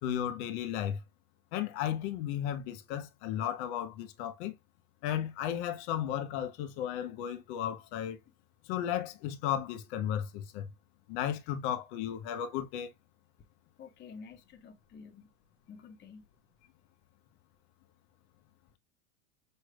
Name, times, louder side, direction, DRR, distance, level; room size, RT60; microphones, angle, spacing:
voice 1, 0.0-1.0 1.5-4.5 5.0-8.2 8.7-10.7 11.1-12.9, left 10 dB, 50° left, 1.2 m, -34 dB
voice 2, 13.8-15.3 15.7-16.2, left 5 dB, 25° left, 1.0 m, -50 dB
6.8 x 3.1 x 2.3 m
hypercardioid pair, 100°, 43 cm